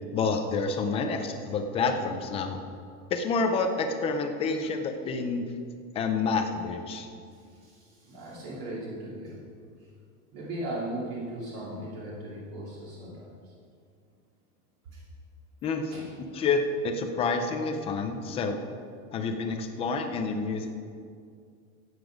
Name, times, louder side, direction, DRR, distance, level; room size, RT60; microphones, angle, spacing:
voice 1, 0.1-2.6 3.1-5.5 5.9-7.1 15.6-15.9 16.3-18.6 19.1-20.8, left 4 dB, 15° left, 5 dB, 0.4 m, -28 dB
voice 2, 0.9-1.3 7.2-9.4 10.3-13.5 14.9-15.0 15.9-16.0, right 1 dB, 45° right, -6 dB, 2.8 m, -38 dB
15.5 x 8.1 x 5.1 m, 2.3 s
supercardioid pair, 170°, 42 cm